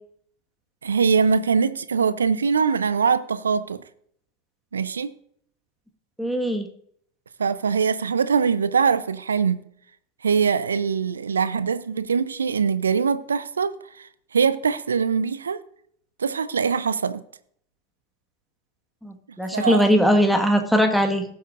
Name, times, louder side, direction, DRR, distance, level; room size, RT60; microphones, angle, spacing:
voice 1, 0.8-3.8 4.7-5.1 7.4-9.6 10.2-15.6 16.2-17.2 19.5-19.9, right 6 dB, 80° right, 0.5 m, -22 dB
voice 2, 6.2-6.7 19.0-21.2, equal, ahead, 1.5 m, -20 dB
18.0 x 7.8 x 2.5 m
figure-of-eight pair, 85°, 0 cm